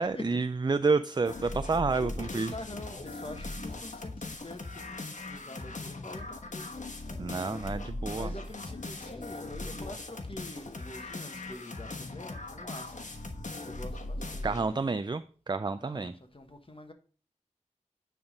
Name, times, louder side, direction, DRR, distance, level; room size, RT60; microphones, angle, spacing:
voice 1, 0.0-2.5 7.2-8.3 14.4-16.1, right 4 dB, 35° right, 12 dB, 0.4 m, -29 dB
sound 1, 1.2-14.7, left 2 dB, 85° left, 1.2 m, -39 dB
voice 2, 2.0-7.4 8.1-12.9 13.6-14.8 15.8-16.9, left 2 dB, 45° left, 6 dB, 1.4 m, -46 dB
9.5 x 3.6 x 5.2 m, 0.41 s
wide cardioid pair, 50°, 13 cm